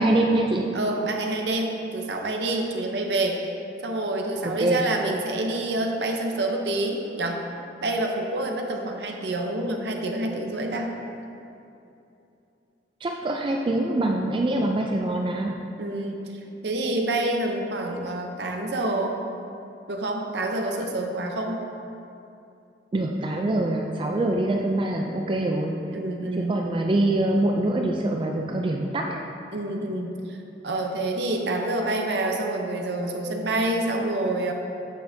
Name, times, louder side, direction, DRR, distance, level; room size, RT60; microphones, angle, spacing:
voice 1, 0.0-0.6 4.4-4.8 13.0-15.6 22.9-25.8 26.3-29.2, right 1 dB, 30° right, 1 dB, 0.3 m, -24 dB
voice 2, 0.7-3.5 3.8-7.5 7.8-10.9 15.8-16.2 16.6-19.2 19.9-21.6 25.9-26.6 29.5-30.4 30.6-34.5, right 2 dB, 70° right, 2 dB, 0.7 m, -27 dB
8.3 x 6.4 x 2.7 m, 2.8 s
head